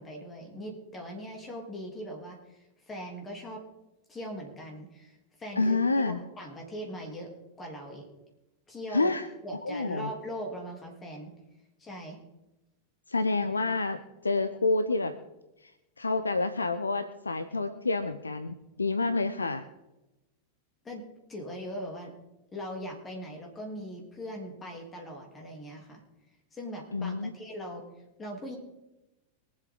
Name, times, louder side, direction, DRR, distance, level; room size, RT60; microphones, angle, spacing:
voice 1, 0.0-2.6 2.9-3.6 4.1-5.8 6.0-8.1 8.7-9.1 9.4-11.3 11.8-12.2 20.8-21.0 21.3-22.1 22.5-26.0 26.5-27.8 28.2-28.6, equal, 20° left, 0 dB, 3.1 m, -40 dB
voice 2, 5.6-6.2 8.9-9.3 9.6-10.1 13.1-15.1 15.6-15.7 16.0-19.6 26.9-27.3, left 3 dB, 80° left, 10 dB, 0.7 m, -28 dB
24.0 x 8.2 x 3.8 m, 0.98 s
figure-of-eight pair, 90°, 0 cm